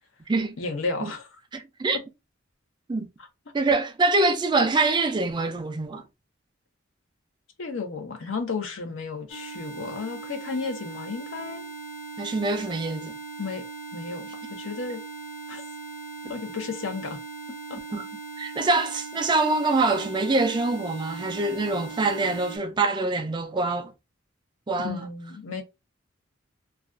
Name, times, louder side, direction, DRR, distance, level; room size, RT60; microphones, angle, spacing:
voice 1, 0.6-1.3 7.6-11.7 13.4-13.6 13.9-15.0 15.5-15.6 16.2-17.2 17.5-17.8 24.8-25.6, left 4 dB, 80° left, 0.6 m, -33 dB
voice 2, 1.5-2.0 2.9-3.1 3.5-6.1 12.2-13.1 17.9-18.0 18.4-23.9 24.7-25.1, right 3 dB, 25° right, 0.3 m, -25 dB
sound 1, 9.3-22.6, right 4 dB, 40° left, 0.7 m, -39 dB
2.3 x 2.2 x 2.4 m
head